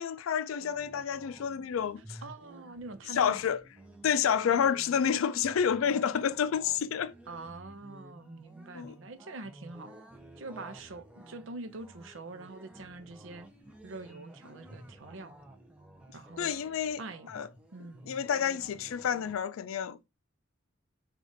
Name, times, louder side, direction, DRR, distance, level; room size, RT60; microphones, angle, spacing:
voice 1, 0.0-2.2 3.1-3.6 4.0-7.1 8.7-9.0 16.4-17.0 17.3-17.5 18.0-20.0, left 8 dB, 85° left, 0.4 m, -29 dB
sound 1, 0.6-19.4, right 1 dB, 5° right, 0.6 m, -53 dB
voice 2, 2.2-3.4 7.3-9.9 10.4-13.5 13.8-15.3 16.1-16.5 17.0-18.1, right 3 dB, 70° right, 0.6 m, -44 dB
4.9 x 2.4 x 3.9 m
head